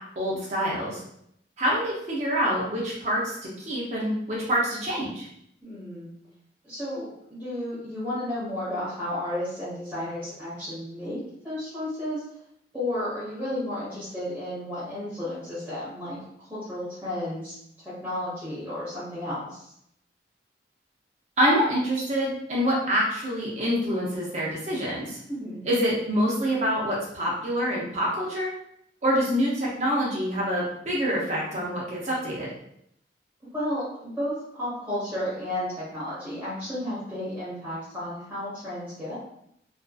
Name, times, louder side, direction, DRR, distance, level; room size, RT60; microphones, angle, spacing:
voice 1, 0.2-1.0 1.6-5.3 21.4-25.2 25.6-28.5 29.0-32.5, equal, 40° right, -5 dB, 0.6 m, -26 dB
voice 2, 5.6-6.1 6.6-12.2 12.7-17.6 17.8-19.7 25.3-25.6 33.5-39.2, left 1 dB, 10° right, -11 dB, 1.1 m, -33 dB
2.5 x 2.3 x 2.3 m, 0.73 s
head